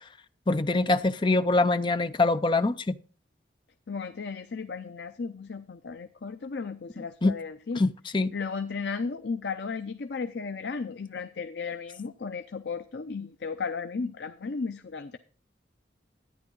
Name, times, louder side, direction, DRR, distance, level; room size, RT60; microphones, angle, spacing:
voice 1, 0.5-3.0 7.2-7.4 7.8-8.3, left 2 dB, 25° left, 0.5 m, -24 dB
voice 2, 3.9-7.9 8.3-15.2, left 5 dB, 70° left, 0.6 m, -35 dB
11.5 x 9.6 x 3.8 m
head